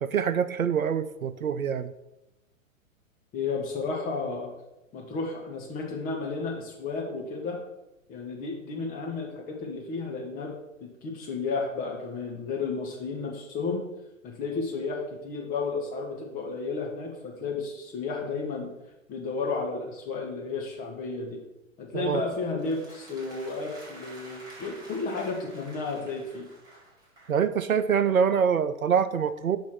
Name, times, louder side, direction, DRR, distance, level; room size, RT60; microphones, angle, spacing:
voice 1, 0.0-1.9 21.9-22.2 27.3-29.6, right 7 dB, 85° right, 13 dB, 0.6 m, -25 dB
voice 2, 3.3-4.5 4.9-7.6 8.1-10.5 10.8-13.8 14.2-18.7 19.1-21.4 21.8-26.5, left 4 dB, 20° left, 0 dB, 1.3 m, -32 dB
sound 1, 22.6-27.4, right 1 dB, 10° right, 2.1 m, -49 dB
5.3 x 5.3 x 5.9 m, 0.95 s
figure-of-eight pair, 110°, 41 cm